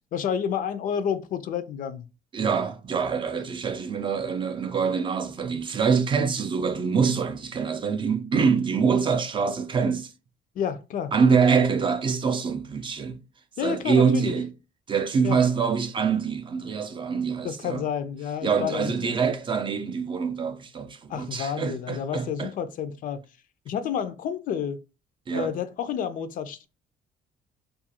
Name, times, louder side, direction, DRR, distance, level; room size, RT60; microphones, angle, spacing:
voice 1, 0.1-2.0 10.6-11.1 13.6-14.3 15.2-15.4 17.4-19.2 21.1-23.2 23.7-24.8 25.3-26.7, left 8 dB, 55° left, 0.4 m, -30 dB
voice 2, 2.3-10.1 11.1-13.2 13.6-14.5 14.9-17.8 18.4-22.5 25.3-25.5, right 6 dB, 30° right, 0.4 m, -25 dB
2.4 x 2.2 x 2.8 m
cardioid pair, 110°, 17 cm